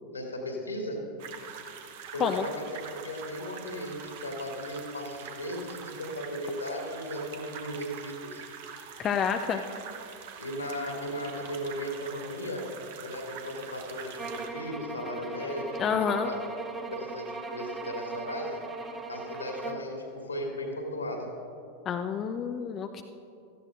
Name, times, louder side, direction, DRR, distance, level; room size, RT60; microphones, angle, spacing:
voice 1, 0.1-1.0 2.1-8.4 10.4-12.7 13.0-16.4 16.9-18.6 19.1-21.3, equal, 80° left, 0 dB, 2.3 m, -36 dB
sound 1, 1.2-14.5, right 7 dB, 50° right, 0.9 m, -44 dB
voice 2, 9.0-9.6 15.8-16.3 21.9-23.0, left 7 dB, 30° left, 6 dB, 0.5 m, -28 dB
sound 2, 14.2-19.9, right 3 dB, 15° right, 0.7 m, -39 dB
17.0 x 14.0 x 2.6 m, 2.6 s
figure-of-eight pair, 90°, 0 cm